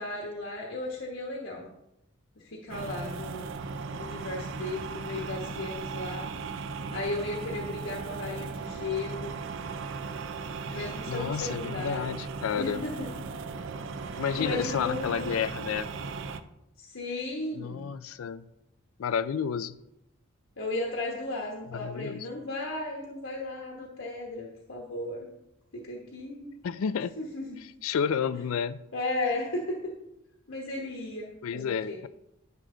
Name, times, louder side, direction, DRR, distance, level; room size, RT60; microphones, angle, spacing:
voice 1, 0.0-1.7 2.4-3.5 3.9-6.3 6.9-9.4 10.7-12.1 12.5-13.1 14.0-15.3 16.8-17.8 20.6-25.3 25.7-26.5 27.2-27.4 28.9-29.9 30.5-32.0, left 2 dB, 65° left, -1 dB, 1.2 m, -35 dB
sound 1, 2.7-16.4, right 4 dB, 65° right, 0.6 m, -37 dB
voice 2, 11.1-12.8 14.1-15.9 17.5-18.4 19.0-19.8 21.7-22.3 26.6-27.2 27.8-28.8 31.4-32.1, left 7 dB, 85° left, 15 dB, 0.4 m, -31 dB
10.5 x 6.3 x 3.8 m, 0.85 s
head